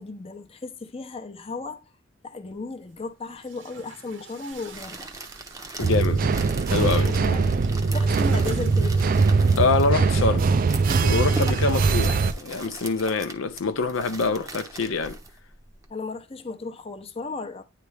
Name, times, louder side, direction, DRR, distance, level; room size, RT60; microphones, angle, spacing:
voice 1, 0.0-1.8 2.2-5.1 7.1-7.5 7.9-9.0 15.9-17.6, left 3 dB, 30° left, 0.7 m, -35 dB
Chatter / Gurgling / Tap, 2.5-2.6 3.3-12.4, right 4 dB, 65° right, 0.9 m, -44 dB
sound 1, 4.5-15.9, right 2 dB, 15° right, 0.7 m, -41 dB
voice 2, 5.8-6.3 6.7-7.1 9.6-10.5 11.0-15.2, left 4 dB, 75° left, 0.5 m, -25 dB
sound 2, 5.8-12.3, right 4 dB, 45° right, 0.3 m, -21 dB
9.5 x 3.3 x 3.3 m
head